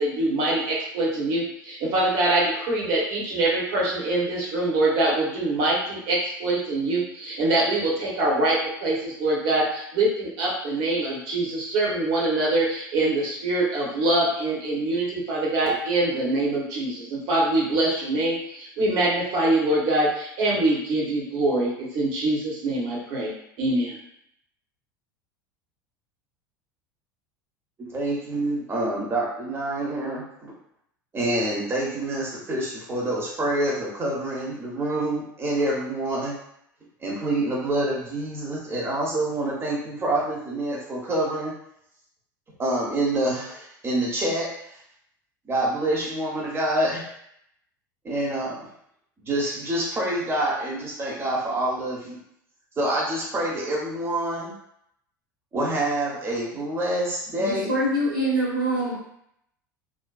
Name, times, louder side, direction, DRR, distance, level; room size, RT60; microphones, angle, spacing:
voice 1, 0.0-8.6 8.8-23.3 23.6-24.0, right 2 dB, 55° right, -4 dB, 1.0 m, -24 dB
voice 2, 27.8-30.5 31.1-36.3 37.0-41.5 42.6-44.5 45.5-47.0 48.0-48.6 49.2-52.2 52.8-54.5 55.5-57.8, right 1 dB, 20° right, -4 dB, 0.8 m, -27 dB
voice 3, 57.3-58.9, right 1 dB, 85° right, -7 dB, 1.1 m, -24 dB
2.5 x 2.2 x 2.2 m, 0.74 s
figure-of-eight pair, 75°, 11 cm